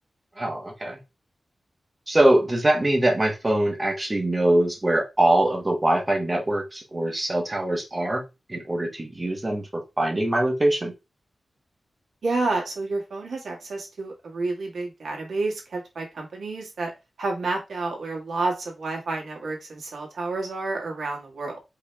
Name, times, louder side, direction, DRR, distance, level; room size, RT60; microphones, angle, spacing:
voice 1, 0.4-1.0 2.1-8.2 8.5-10.9, right 1 dB, 20° right, 1 dB, 0.9 m, -23 dB
voice 2, 12.2-16.9 17.2-21.6, right 3 dB, 85° right, 0 dB, 1.7 m, -29 dB
4.9 x 2.9 x 3.3 m, 0.25 s
wide cardioid pair, 180°, 0 cm